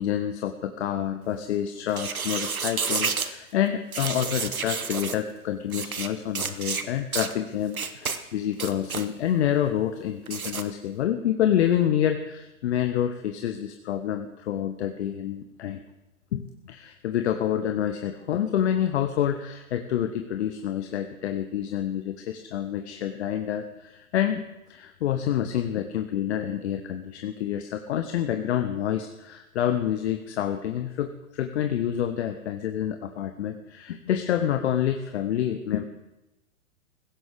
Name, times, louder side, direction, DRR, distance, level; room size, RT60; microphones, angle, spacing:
voice 1, 0.0-15.8 16.3-24.4 24.7-35.8, left 10 dB, 55° left, 7 dB, 1.0 m, -28 dB
sound 1, 1.9-3.3 3.9-5.2 5.7-6.1 6.3-6.8 7.1-7.3 7.7-8.2 8.5-9.1 10.3-10.6, right 5 dB, 90° right, 1.1 m, -30 dB
18.5 x 16.0 x 3.6 m, 0.99 s
figure-of-eight pair, 110°, 41 cm